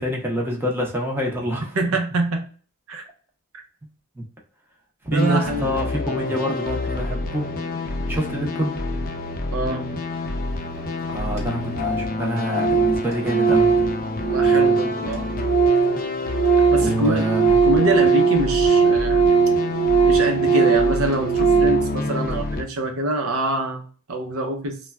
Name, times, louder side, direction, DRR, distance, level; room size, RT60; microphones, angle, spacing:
voice 1, 0.0-1.8 4.2-4.3 5.0-7.5 8.1-8.7 11.1-13.8 16.8-17.5, equal, 10° right, -1 dB, 0.7 m, -26 dB
voice 2, 1.7-2.5 2.9-3.1 5.1-5.9 9.5-10.0 14.3-15.3 16.7-17.3 17.6-19.3 20.0-24.8, right 1 dB, 70° right, 4 dB, 0.6 m, -25 dB
sound 1, 5.2-22.6, left 2 dB, 40° left, 0.4 m, -28 dB
Organ, 10.8-10.9 11.1-11.2 11.4-11.5 11.7-12.1 12.4-16.0 16.3-21.9, right 5 dB, 30° right, 1.0 m, -19 dB
3.1 x 2.2 x 2.2 m, 0.41 s
head